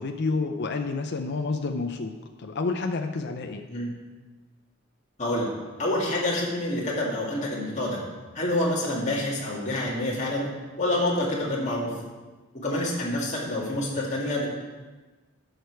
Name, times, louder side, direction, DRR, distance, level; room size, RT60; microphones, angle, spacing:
voice 1, 0.0-2.1 2.4-3.6, left 3 dB, 55° left, 5 dB, 0.5 m, -29 dB
voice 2, 5.2-5.5 5.8-8.0 8.3-10.5 10.8-11.9 12.6-14.5, left 1 dB, 35° left, -4 dB, 2.2 m, -27 dB
11.0 x 6.5 x 4.6 m, 1.3 s
head